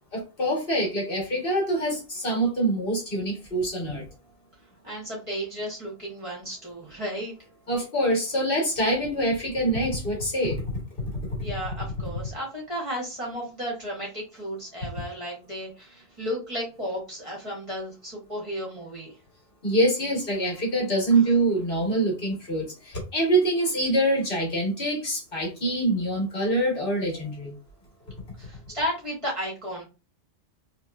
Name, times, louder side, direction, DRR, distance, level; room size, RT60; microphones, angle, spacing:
voice 1, 0.1-4.0 7.7-10.6 19.6-27.5, right 1 dB, 60° left, -2 dB, 1.6 m, -25 dB
voice 2, 4.8-7.3 11.4-19.2 21.1-21.2 28.4-29.8, equal, 30° right, -4 dB, 1.5 m, -33 dB
3.2 x 3.0 x 2.4 m, 0.30 s
omnidirectional pair, 1.1 m